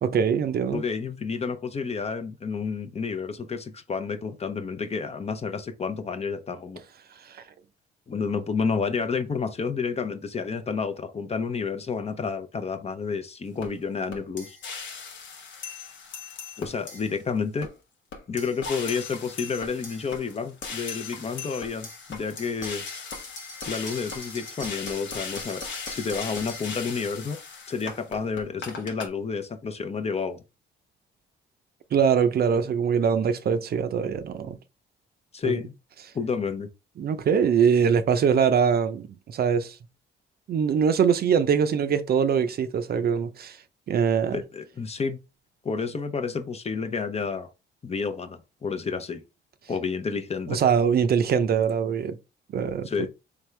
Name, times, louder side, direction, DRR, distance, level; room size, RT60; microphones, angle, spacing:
voice 1, 0.0-0.8 7.3-7.4 31.9-34.6 35.4-35.6 37.0-39.8 40.5-43.6 43.9-44.4 50.5-52.2 52.5-53.1, right 7 dB, 50° right, 0.5 m, -23 dB
voice 2, 0.7-6.8 8.1-14.6 16.6-17.7 18.3-22.8 23.7-27.4 27.7-30.4 35.3-35.7 36.1-36.7 44.3-45.2 45.6-47.5 47.8-49.2 49.7-50.6 52.9-53.1, left 5 dB, 30° left, 0.7 m, -30 dB
sound 1, 13.6-13.7 14.1-17.2 17.6-17.7 18.1-29.1, left 5 dB, 70° left, 1.1 m, -38 dB
3.5 x 3.4 x 3.2 m
cardioid pair, 90°, 20 cm